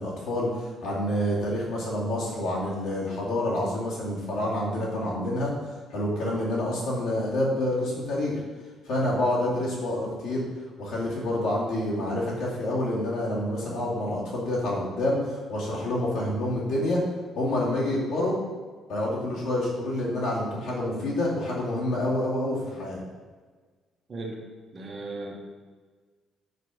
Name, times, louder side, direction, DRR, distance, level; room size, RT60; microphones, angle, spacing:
voice 1, 0.0-5.5 5.9-8.4 8.8-10.4 10.8-17.0 17.4-18.4 18.9-23.0, left 1 dB, 80° left, -5 dB, 2.4 m, -28 dB
voice 2, 24.1-24.4 24.7-25.4, right 2 dB, 30° right, 1 dB, 0.9 m, -36 dB
6.7 x 4.3 x 6.2 m, 1.5 s
cardioid pair, 165°, 0 cm